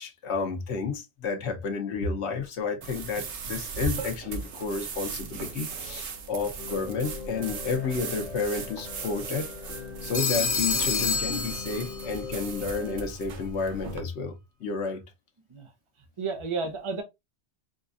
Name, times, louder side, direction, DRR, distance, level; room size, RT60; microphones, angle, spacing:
voice 1, 0.0-9.8 10.0-15.0, left 4 dB, 75° left, 1.2 m, -31 dB
sound 1, 2.8-14.0, right 5 dB, 80° right, 1.1 m, -38 dB
sound 2, 6.6-13.1, left 7 dB, 50° left, 0.6 m, -41 dB
Telephone, 10.1-12.2, left 4 dB, 30° left, 0.9 m, -28 dB
voice 2, 16.2-17.0, right 4 dB, 30° right, 0.8 m, -31 dB
5.1 x 2.4 x 2.5 m
omnidirectional pair, 1.2 m